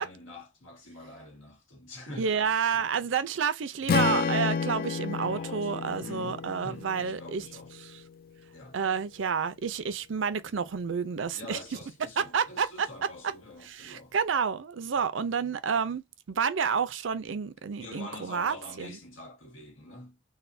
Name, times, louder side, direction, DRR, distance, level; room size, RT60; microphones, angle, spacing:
voice 1, 0.0-2.9 5.2-7.7 8.5-8.8 11.3-14.2 14.9-15.1 17.8-20.2, left 2 dB, 90° left, 1.5 m, -46 dB
voice 2, 2.2-7.4 7.8-7.9 8.7-11.6 12.2-12.9 13.7-19.0, right 6 dB, 75° right, 0.5 m, -29 dB
Strum, 3.9-8.1, left 5 dB, 45° left, 0.3 m, -31 dB
4.0 x 2.2 x 2.6 m
head